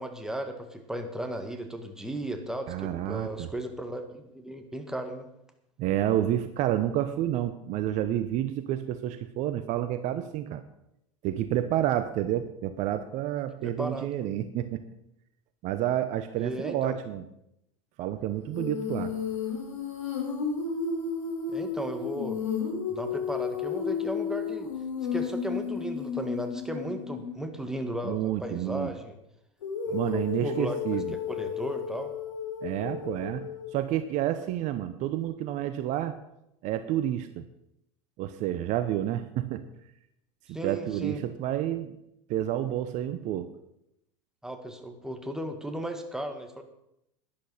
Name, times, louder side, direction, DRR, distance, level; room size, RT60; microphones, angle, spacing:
voice 1, 0.0-5.3 13.6-14.3 16.4-17.0 21.5-22.4 22.9-24.7 25.1-29.2 29.9-31.0 31.3-32.1 40.5-41.2 44.4-46.6, right 1 dB, 5° right, 5 dB, 2.0 m, -35 dB
voice 2, 2.7-3.5 5.8-10.6 11.2-14.8 15.6-17.2 18.0-19.1 28.0-28.9 29.9-31.1 32.6-33.4 33.7-36.1 36.6-37.4 38.2-39.6 40.6-42.0 42.3-43.5, right 12 dB, 50° right, 11 dB, 0.9 m, -29 dB
Female singing, 18.5-27.4 29.6-33.8, left 6 dB, 80° left, 4.0 m, -33 dB
11.5 x 10.5 x 5.7 m, 0.80 s
hypercardioid pair, 85°, 16 cm